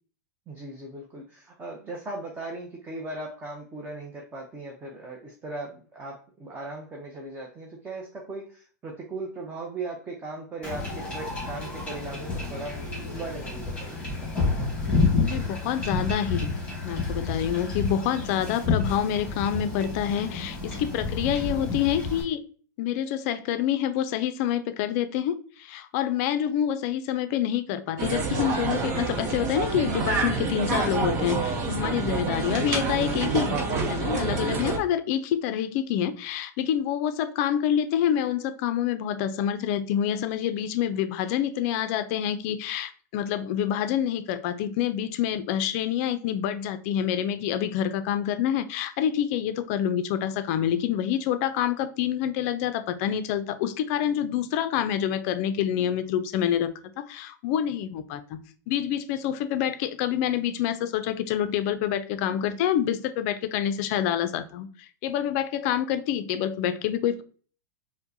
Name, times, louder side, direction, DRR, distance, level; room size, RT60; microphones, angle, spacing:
voice 1, 0.5-14.1, right 2 dB, 20° right, 0.7 m, -38 dB
Wind / Ocean / Boat Water vehicle, 10.6-22.2, left 3 dB, 10° left, 1.2 m, -29 dB
voice 2, 15.1-16.5 16.8-22.4 22.8-25.3 25.6-58.4 58.7-64.7 65.0-67.2, left 10 dB, 50° left, 0.4 m, -27 dB
sound 1, 28.0-34.8, right 4 dB, 55° right, 0.8 m, -27 dB
4.4 x 2.1 x 2.7 m
hypercardioid pair, 125°, 10 cm